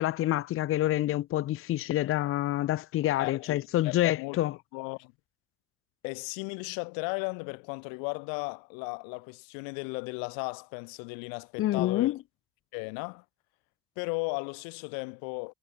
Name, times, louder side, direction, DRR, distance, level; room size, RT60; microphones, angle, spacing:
voice 1, 0.0-4.5 11.6-12.2, left 14 dB, 35° left, 2.2 m, -27 dB
voice 2, 3.2-4.4 4.7-5.1 6.0-12.2 12.7-13.2 14.0-15.5, left 40 dB or more, 60° left, 7.4 m, -36 dB
cardioid pair, 175°, 38 cm